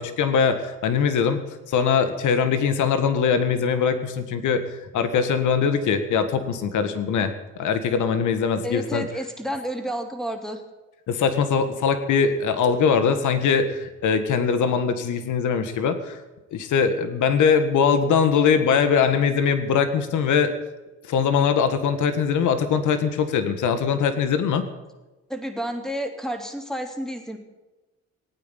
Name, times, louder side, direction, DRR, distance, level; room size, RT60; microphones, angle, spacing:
voice 1, 0.0-1.4 1.7-9.1 11.1-16.2 16.5-20.5 21.1-24.7, left 6 dB, 75° left, 10 dB, 1.8 m, -22 dB
voice 2, 8.6-10.6 25.3-27.4, equal, ahead, 4 dB, 3.1 m, -30 dB
18.0 x 9.4 x 8.3 m, 1.1 s
cardioid pair, 90°, 30 cm